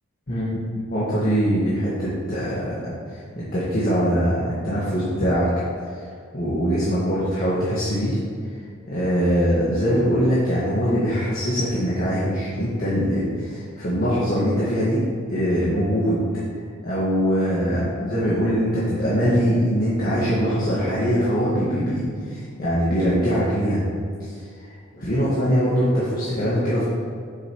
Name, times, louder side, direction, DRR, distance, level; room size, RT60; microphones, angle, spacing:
voice 1, 0.3-0.6 0.9-5.5 5.9-6.1 6.3-8.2 8.9-15.0 15.3-16.2 16.8-23.8 24.2-24.5 24.9-26.9, equal, 45° left, -9 dB, 1.5 m, -22 dB
7.7 x 7.0 x 3.0 m, 2.2 s
head